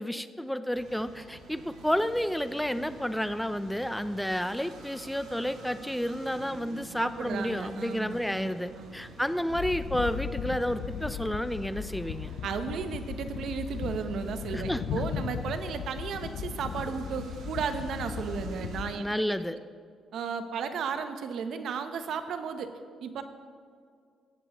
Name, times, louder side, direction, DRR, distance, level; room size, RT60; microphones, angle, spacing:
voice 1, 0.0-12.3 14.5-14.8 19.0-19.6, equal, 5° left, 12 dB, 0.4 m, -31 dB
sound 1, 0.7-18.9, right 2 dB, 85° right, 2.4 m, -49 dB
voice 2, 7.0-8.5 8.8-9.0 12.4-19.4 20.1-22.7 23.0-23.2, right 6 dB, 70° right, 9 dB, 0.8 m, -34 dB
sound 2, 9.5-18.9, left 8 dB, 75° left, 0.5 m, -37 dB
17.0 x 7.7 x 3.0 m, 2.1 s
cardioid pair, 90°, 0 cm